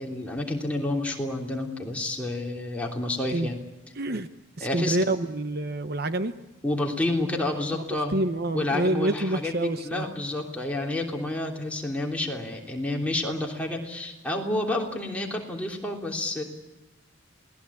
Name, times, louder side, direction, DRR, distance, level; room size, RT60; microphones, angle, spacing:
voice 1, 0.0-3.6 4.6-5.0 6.6-8.2 8.5-16.4, left 2 dB, 5° left, -1 dB, 3.2 m, -29 dB
voice 2, 4.0-4.3 4.6-6.3 7.9-10.0, right 1 dB, 50° right, 10 dB, 0.9 m, -27 dB
28.0 x 19.5 x 8.5 m, 1.1 s
head